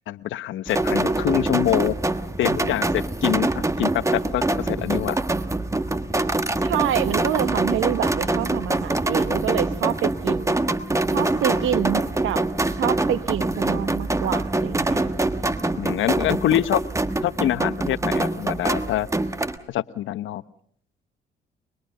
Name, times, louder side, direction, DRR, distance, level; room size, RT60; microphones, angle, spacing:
voice 1, 0.1-1.9 2.4-5.2 15.8-16.8 17.2-19.1 19.7-20.4, left 12 dB, 75° left, 14 dB, 0.9 m, -25 dB
sound 1, 0.7-19.6, right 2 dB, 15° right, 1.4 m, -24 dB
voice 2, 6.6-10.6 11.1-12.4 12.8-15.1, right 11 dB, 80° right, 13 dB, 1.1 m, -27 dB
24.5 x 21.5 x 6.6 m, 0.64 s
cardioid pair, 90°, 20 cm